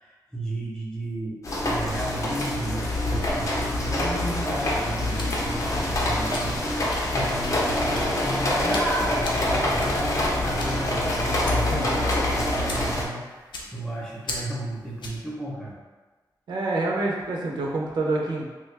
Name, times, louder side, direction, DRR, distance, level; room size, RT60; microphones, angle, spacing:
voice 1, 0.0-15.8, right 1 dB, 10° left, -5 dB, 0.7 m, -33 dB
sound 1, 1.4-13.0, left 1 dB, 45° left, 0.6 m, -25 dB
sound 2, 5.1-15.3, left 2 dB, 85° left, 0.5 m, -40 dB
voice 2, 11.7-12.2 16.5-18.4, right 2 dB, 80° right, -2 dB, 0.6 m, -27 dB
3.1 x 2.2 x 3.3 m, 1.3 s
wide cardioid pair, 155°, 8 cm